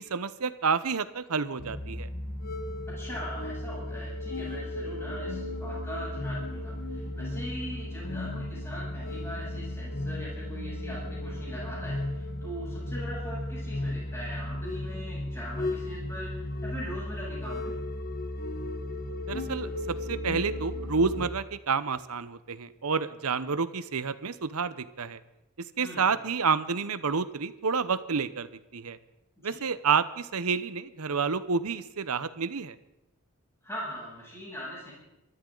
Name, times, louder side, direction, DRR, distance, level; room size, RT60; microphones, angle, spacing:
voice 1, 0.0-2.1 19.3-25.2 25.6-29.0 29.4-32.8, right 5 dB, 85° right, 14 dB, 0.9 m, -29 dB
sound 1, 1.6-21.3, left 1 dB, 40° left, 1.5 m, -35 dB
voice 2, 3.0-17.7 25.8-26.0 29.4-29.6 33.6-34.9, equal, 10° left, -6 dB, 7.8 m, -41 dB
26.5 x 13.5 x 3.9 m, 0.91 s
head